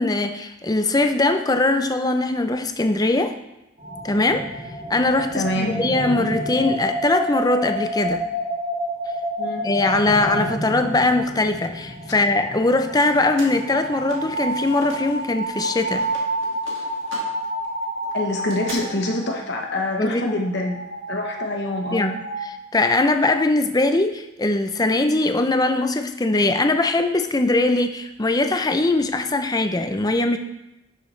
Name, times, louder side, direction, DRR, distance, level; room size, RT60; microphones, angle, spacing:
voice 1, 0.0-3.3 4.0-4.4 4.9-8.3 9.6-16.1 20.0-20.4 21.9-22.1 22.7-30.4, left 2 dB, 20° left, 8 dB, 0.5 m, -21 dB
sound 1, 3.8-22.5, right 1 dB, 40° right, 3.0 m, -30 dB
voice 2, 5.3-5.8 9.4-9.7 18.1-20.8 21.1-22.2, left 1 dB, 55° left, 1 dB, 1.1 m, -26 dB
sound 2, 12.6-15.2 15.5-18.8, right 3 dB, 70° right, 2.1 m, -41 dB
11.5 x 6.8 x 3.3 m, 0.94 s
head